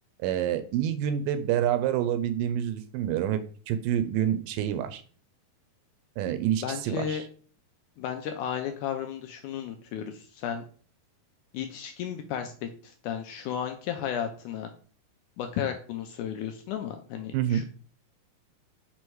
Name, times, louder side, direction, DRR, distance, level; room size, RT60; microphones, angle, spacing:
voice 1, 0.2-3.4 3.7-5.0 6.2-7.2 17.3-17.6, right 10 dB, 80° right, 10 dB, 2.2 m, -27 dB
voice 2, 6.6-7.2 8.0-10.7 11.5-14.7 15.4-17.6, left 9 dB, 80° left, 5 dB, 1.9 m, -34 dB
6.3 x 3.3 x 4.6 m, 0.42 s
omnidirectional pair, 4.0 m